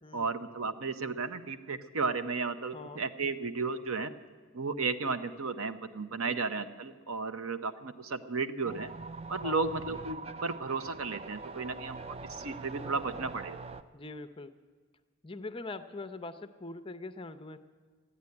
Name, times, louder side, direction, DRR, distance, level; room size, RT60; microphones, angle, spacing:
voice 1, 0.1-4.1 4.5-8.9 9.3-12.0 12.3-13.6, right 4 dB, 75° right, 10 dB, 0.8 m, -34 dB
sound 1, 8.6-13.8, right 3 dB, 30° right, 0.4 m, -43 dB
voice 2, 13.9-14.5 15.2-17.6, left 3 dB, 25° left, 11 dB, 0.6 m, -42 dB
14.5 x 9.6 x 9.5 m, 1.5 s
head